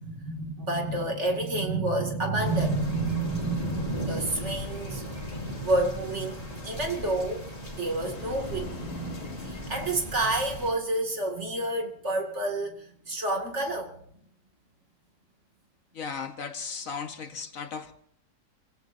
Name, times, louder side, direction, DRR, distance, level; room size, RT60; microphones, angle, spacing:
voice 1, 0.0-7.5 7.8-14.0, right 2 dB, 45° right, 2.6 m, -29 dB
sound 1, 2.4-10.7, right 1 dB, 20° left, 3.2 m, -37 dB
sound 2, 7.5-10.9 11.3-11.7, left 4 dB, 75° left, 2.6 m, -43 dB
voice 2, 15.9-17.9, left 5 dB, 60° left, 1.4 m, -36 dB
30.0 x 16.5 x 2.7 m
omnidirectional pair, 1.7 m